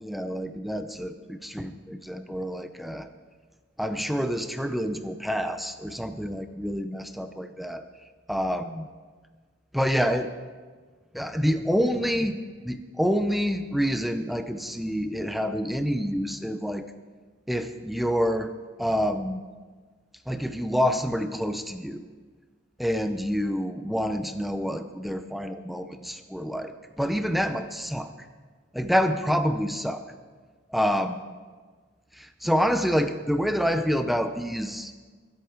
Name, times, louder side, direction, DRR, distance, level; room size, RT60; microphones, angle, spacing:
voice 1, 0.0-3.1 3.8-7.8 8.3-8.9 9.7-10.3 11.1-16.9 17.5-19.4 20.3-22.0 22.8-28.1 28.7-30.0 30.7-31.2 32.1-34.9, equal, ahead, 9 dB, 0.5 m, -27 dB
23.5 x 8.2 x 4.6 m, 1.5 s
head